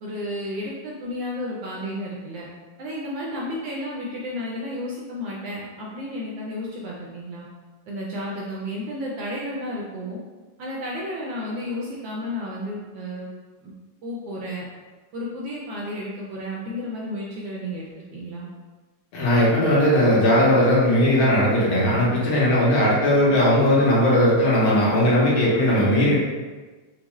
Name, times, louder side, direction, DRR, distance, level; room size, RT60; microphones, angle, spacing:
voice 1, 0.0-2.5 2.8-7.5 7.9-10.2 10.6-13.3 13.6-13.7 14.0-14.6 15.1-18.5, left 1 dB, 75° right, -4 dB, 1.1 m, -32 dB
voice 2, 19.1-26.2, left 1 dB, 70° left, -6 dB, 1.7 m, -18 dB
4.6 x 2.0 x 3.0 m, 1.3 s
omnidirectional pair, 2.4 m